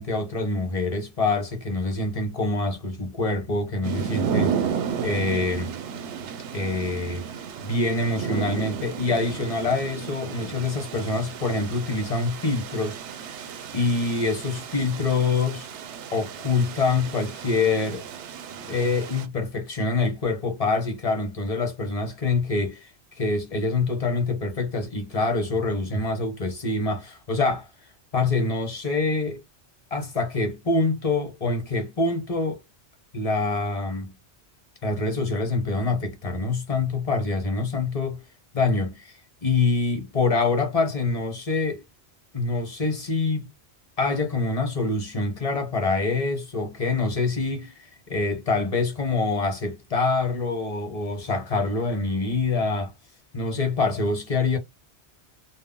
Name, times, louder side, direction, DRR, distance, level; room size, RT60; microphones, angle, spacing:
voice 1, 0.0-5.7 6.5-7.3 7.6-13.4 13.7-15.7 16.1-18.0 18.7-22.9 23.2-27.7 28.1-29.4 29.9-32.6 33.1-34.1 34.8-38.2 38.5-41.8 42.3-43.5 44.0-52.9 53.3-54.6, left 3 dB, 35° left, 0.8 m, -25 dB
sound 1, 3.8-19.3, right 7 dB, 80° right, 0.9 m, -33 dB
2.1 x 2.0 x 3.6 m
omnidirectional pair, 1.1 m